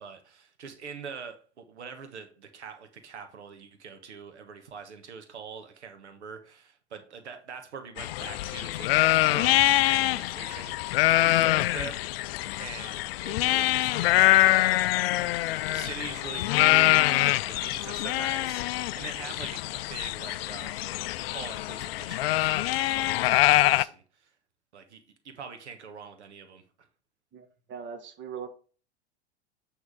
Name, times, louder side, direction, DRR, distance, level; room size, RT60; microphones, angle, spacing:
voice 1, 0.0-8.9 9.2-9.6 9.9-10.8 11.2-20.9 21.3-24.3 24.7-26.6, right 6 dB, 80° right, 1.3 m, -44 dB
sound 1, 8.0-23.8, left 16 dB, 60° left, 0.5 m, -24 dB
voice 2, 27.3-28.5, right 7 dB, 35° right, 1.5 m, -40 dB
9.4 x 3.6 x 4.8 m
hypercardioid pair, 95°, 34 cm